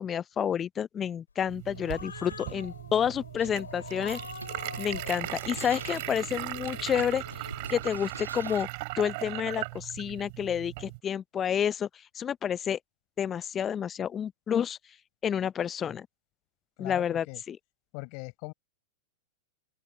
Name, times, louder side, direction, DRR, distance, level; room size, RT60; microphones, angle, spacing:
voice 1, 0.0-4.2 4.8-7.2 7.7-8.7 9.0-11.9 12.1-12.8 13.2-14.8 15.2-16.1 16.8-17.6, left 8 dB, 25° left, 0.6 m, -29 dB
Growling, 1.5-8.2, left 5 dB, 85° left, 4.9 m, -45 dB
sound 1, 1.5-11.0, right 27 dB, 50° right, 6.1 m, -38 dB
sound 2, 3.4-8.8, right 4 dB, 85° right, 3.8 m, -45 dB
voice 2, 16.8-17.4 17.9-18.5, left 40 dB or more, 50° left, 5.8 m, -40 dB
open air
figure-of-eight pair, 100°, 0 cm